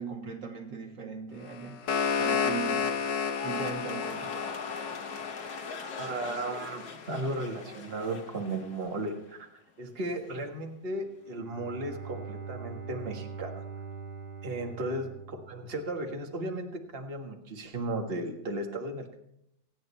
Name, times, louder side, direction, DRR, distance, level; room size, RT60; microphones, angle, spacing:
voice 1, 0.0-1.8 2.2-3.1 3.4-4.3 14.8-14.9, right 6 dB, 90° right, 1 dB, 3.0 m, -39 dB
sound 1, 1.5-6.5, left 6 dB, 85° left, 1.7 m, -31 dB
sound 2, 3.1-9.5 9.8-10.3, left 5 dB, 65° left, 1.9 m, -42 dB
voice 2, 6.0-9.5 9.8-13.6 14.4-19.2, right 2 dB, 35° right, 3 dB, 1.8 m, -35 dB
Bowed string instrument, 11.1-16.1, right 5 dB, 55° right, 5.2 m, -43 dB
25.5 x 9.3 x 4.4 m, 0.79 s
omnidirectional pair, 1.9 m